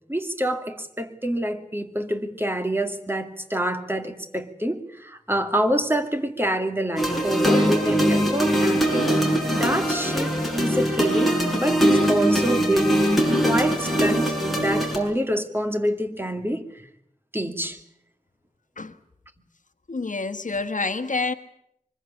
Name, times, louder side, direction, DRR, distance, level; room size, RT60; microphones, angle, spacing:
voice 1, 0.1-9.2 9.5-13.2 13.4-16.9 17.3-17.8, right 1 dB, 15° right, 2.3 m, -26 dB
sound 1, 7.0-15.0, equal, ahead, 6.5 m, -22 dB
voice 2, 19.9-21.3, left 3 dB, 65° left, 1.3 m, -27 dB
24.5 x 21.5 x 8.5 m
wide cardioid pair, 65°, 14 cm